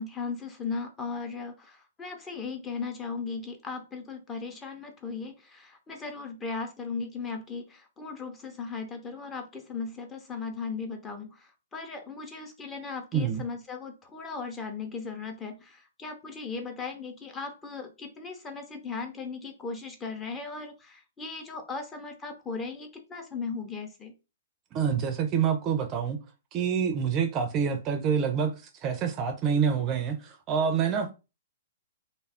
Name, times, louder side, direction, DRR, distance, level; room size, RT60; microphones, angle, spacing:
voice 1, 0.0-24.1, left 4 dB, 15° left, 0.6 m, -37 dB
voice 2, 13.1-13.4 24.7-26.2 26.5-28.5 28.8-31.1, right 7 dB, 30° right, 0.5 m, -27 dB
2.3 x 2.0 x 3.5 m
hypercardioid pair, 120°, 0 cm